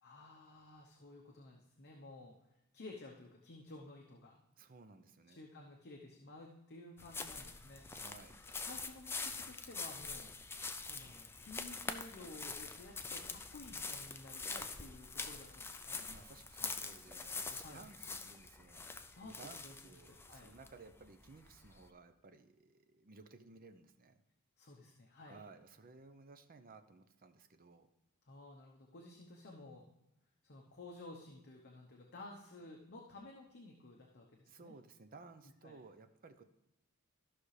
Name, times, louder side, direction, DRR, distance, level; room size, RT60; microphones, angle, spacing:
voice 1, 0.0-2.3 2.7-4.4 5.3-7.8 8.4-10.3 10.9-16.0 17.6-17.8 19.1-19.7 20.1-20.5 24.6-25.4 28.3-29.9 30.4-34.7 35.6-35.8, left 2 dB, 50° left, 0 dB, 0.9 m, -54 dB
voice 2, 4.6-5.4 7.9-8.4 16.1-18.8 19.2-24.2 25.3-27.9 34.5-36.4, right 3 dB, 40° right, 9 dB, 0.7 m, -57 dB
sound 1, 7.0-21.9, left 4 dB, 10° left, 0.4 m, -45 dB
14.0 x 5.9 x 3.3 m, 0.91 s
head